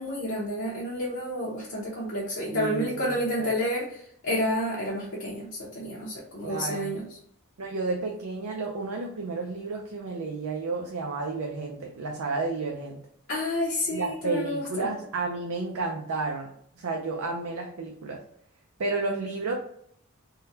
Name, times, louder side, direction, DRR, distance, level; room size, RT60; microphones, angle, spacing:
voice 1, 0.0-7.1 13.3-14.9, left 1 dB, 65° left, -6 dB, 0.8 m, -30 dB
voice 2, 2.5-3.1 3.4-3.5 6.4-6.9 7.6-13.0 13.9-16.5 16.8-18.2 18.8-19.5, right 3 dB, 90° right, 1 dB, 0.5 m, -31 dB
3.7 x 2.2 x 2.7 m, 0.66 s
head